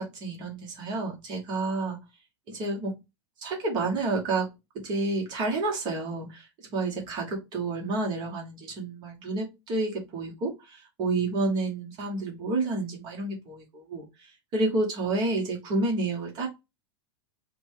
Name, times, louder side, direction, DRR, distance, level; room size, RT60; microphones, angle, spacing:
voice 1, 0.0-2.0 2.5-3.0 3.4-4.5 4.7-16.5, right 2 dB, 30° right, 1.1 m, -30 dB
3.9 x 2.2 x 4.5 m
supercardioid pair, 170°, 15 cm